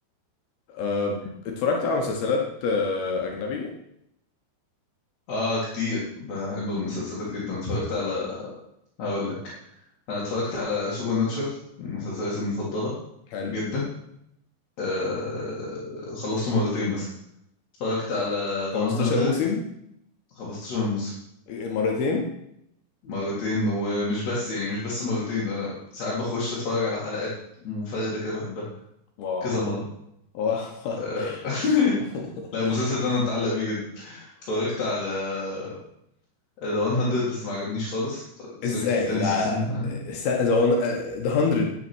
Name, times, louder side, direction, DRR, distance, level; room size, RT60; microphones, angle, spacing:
voice 1, 0.7-3.7 13.3-13.6 18.7-19.7 21.5-22.3 29.2-29.6 30.3-31.4 32.1-32.8 38.6-41.7, left 4 dB, 75° left, 1 dB, 3.0 m, -26 dB
voice 2, 5.3-8.5 9.0-9.3 10.1-12.9 13.5-13.8 14.8-17.1 17.8-19.3 20.4-21.1 23.0-27.3 27.6-28.6 29.4-29.8 31.0-31.9 32.5-35.7 36.6-38.2 38.6-38.8 39.1-40.0, left 3 dB, 50° left, -7 dB, 3.0 m, -28 dB
10.5 x 6.9 x 6.2 m, 0.77 s
omnidirectional pair, 4.7 m